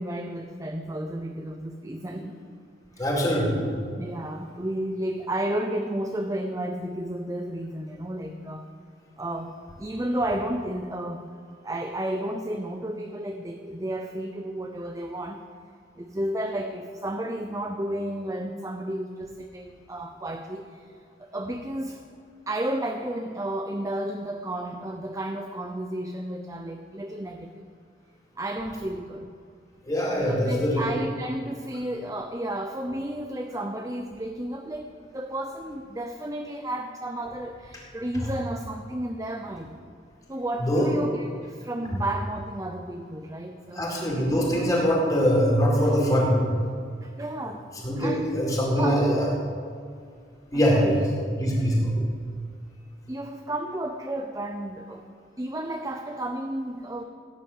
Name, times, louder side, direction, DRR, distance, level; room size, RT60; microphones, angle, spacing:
voice 1, 0.0-2.4 3.0-3.1 4.0-8.7 9.2-9.5 9.8-11.3 11.6-15.4 16.0-20.9 21.2-22.0 22.5-27.6 28.4-29.3 30.2-39.7 40.3-43.9 44.9-45.0 47.0-47.7 48.0-48.4 48.8-49.2 50.5-51.1 52.0-52.1 53.1-55.1 55.4-57.0, right 1 dB, 20° right, 5 dB, 0.7 m, -32 dB
voice 2, 3.0-3.6 29.9-30.8 38.2-38.3 40.6-40.9 43.7-46.4 47.8-49.3 50.5-51.0 51.4-51.9, equal, 20° left, -4 dB, 4.3 m, -23 dB
16.5 x 10.5 x 7.3 m, 2.2 s
head